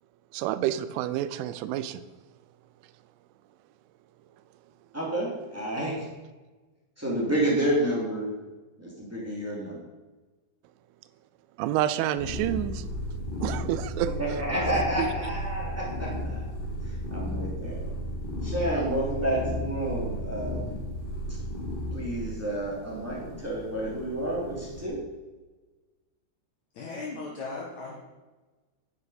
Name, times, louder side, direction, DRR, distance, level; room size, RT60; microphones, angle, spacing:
voice 1, 0.3-2.0 11.6-12.9 13.4-14.2 15.0-15.1, right 12 dB, 85° right, 13 dB, 3.0 m, -28 dB
voice 2, 4.9-6.1 7.0-8.3 8.8-9.8 14.2-16.5 16.8-17.8 18.4-20.7 21.9-25.0, right 1 dB, 5° right, -6 dB, 2.0 m, -30 dB
sound 1, 12.2-24.8, left 1 dB, 25° left, 1.2 m, -34 dB
voice 3, 26.7-27.9, left 3 dB, 75° left, -3 dB, 1.6 m, -37 dB
9.7 x 9.3 x 5.1 m, 1.2 s
omnidirectional pair, 5.7 m